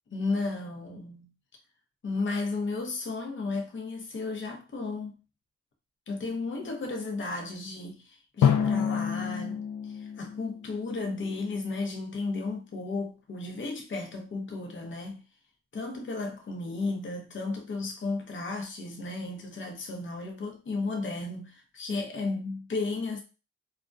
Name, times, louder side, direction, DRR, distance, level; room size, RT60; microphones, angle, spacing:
voice 1, 0.1-1.3 2.0-5.1 6.1-15.2 15.7-23.2, left 3 dB, 40° left, 0.7 m, -34 dB
Drum, 8.4-11.3, left 8 dB, 75° left, 0.5 m, -28 dB
2.3 x 2.1 x 2.5 m
cardioid pair, 70°, 32 cm